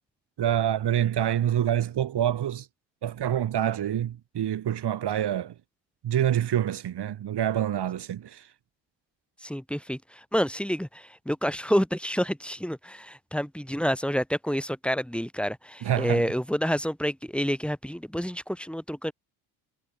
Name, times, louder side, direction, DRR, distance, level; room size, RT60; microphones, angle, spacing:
voice 1, 0.4-2.7 3.0-5.5 6.0-8.4 15.8-16.2, right 10 dB, 55° right, 3.0 m, -26 dB
voice 2, 9.4-19.1, equal, ahead, 4.1 m, -28 dB
hypercardioid pair, 60°, 49 cm